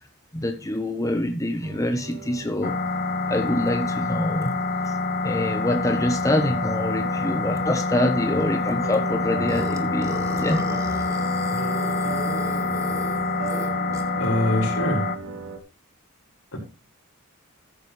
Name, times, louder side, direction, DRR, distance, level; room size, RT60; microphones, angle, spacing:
voice 1, 0.3-2.7 3.3-4.5 5.2-10.6, left 1 dB, 15° left, 6 dB, 1.1 m, -25 dB
sound 1, 1.6-15.6, right 5 dB, 90° right, 2.8 m, -38 dB
sound 2, 2.6-15.2, left 3 dB, 45° left, 0.9 m, -26 dB
Burping eructation, 9.5-14.3, right 1 dB, 15° right, 1.9 m, -36 dB
voice 2, 14.1-15.1 16.5-16.6, left 1 dB, 85° left, 0 dB, 5.7 m, -24 dB
14.0 x 9.1 x 3.3 m, 0.31 s
head